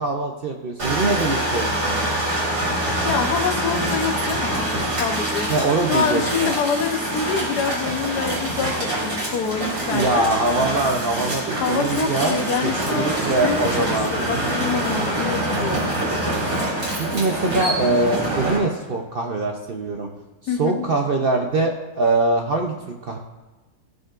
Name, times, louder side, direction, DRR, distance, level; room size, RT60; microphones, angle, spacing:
voice 1, 0.0-2.2 5.5-6.5 9.9-14.5 15.6-15.9 17.0-20.1 20.6-22.7 23.0-23.2, right 2 dB, 50° right, 2 dB, 0.7 m, -23 dB
sound 1, 0.8-18.6, right 1 dB, 90° right, 3.3 m, -25 dB
voice 2, 3.0-5.5 5.9-10.3 11.6-15.9 20.5-20.8, left 5 dB, 85° left, 5 dB, 1.5 m, -26 dB
15.5 x 5.3 x 2.5 m, 1.2 s
omnidirectional pair, 1.7 m